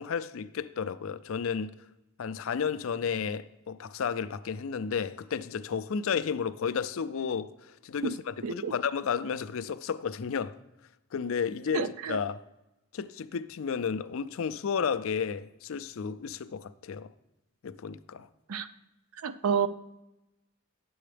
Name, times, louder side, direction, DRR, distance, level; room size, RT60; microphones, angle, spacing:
voice 1, 0.0-1.7 2.2-10.6 11.1-12.4 12.9-17.1 17.6-18.3, left 6 dB, 70° left, 0.4 m, -32 dB
voice 2, 11.7-12.2 18.5-18.7 19.2-19.7, right 6 dB, 80° right, 0.5 m, -29 dB
9.5 x 7.8 x 3.3 m
head